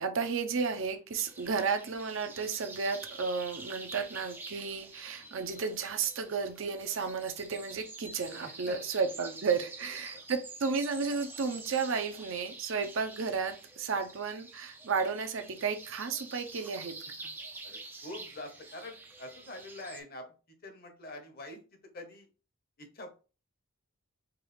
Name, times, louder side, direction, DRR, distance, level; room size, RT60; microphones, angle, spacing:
voice 1, 0.0-16.9, right 5 dB, 60° right, 7 dB, 0.6 m, -33 dB
sound 1, 1.1-20.0, right 3 dB, 10° right, 0.3 m, -47 dB
voice 2, 17.6-20.3 20.6-22.3 22.8-23.1, left 1 dB, 45° left, 5 dB, 0.8 m, -45 dB
4.6 x 2.3 x 3.2 m, 0.34 s
head